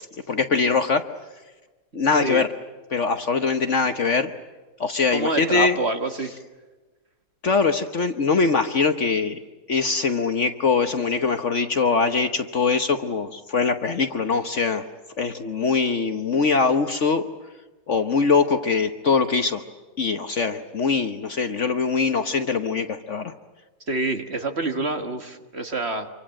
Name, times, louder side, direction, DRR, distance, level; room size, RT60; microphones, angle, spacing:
voice 1, 0.3-1.0 1.9-2.5 2.9-4.3 4.8-5.8 7.4-9.4 9.7-14.8 15.2-17.2 17.9-19.6 20.0-23.3, left 4 dB, 50° left, 9 dB, 1.2 m, -22 dB
voice 2, 5.1-6.3 23.9-26.1, right 2 dB, 40° right, 7 dB, 1.7 m, -26 dB
26.5 x 25.0 x 7.6 m, 1.2 s
omnidirectional pair, 1.8 m